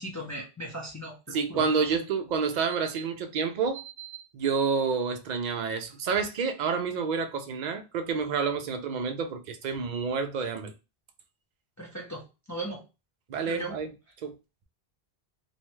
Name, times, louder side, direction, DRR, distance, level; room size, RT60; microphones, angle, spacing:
voice 1, 0.0-1.9 11.8-12.8 13.4-13.8, right 1 dB, 20° left, 0.5 m, -38 dB
voice 2, 1.3-10.7 13.3-13.9 14.2-14.3, right 5 dB, 55° right, 0.5 m, -29 dB
2.7 x 2.2 x 3.0 m
omnidirectional pair, 1.0 m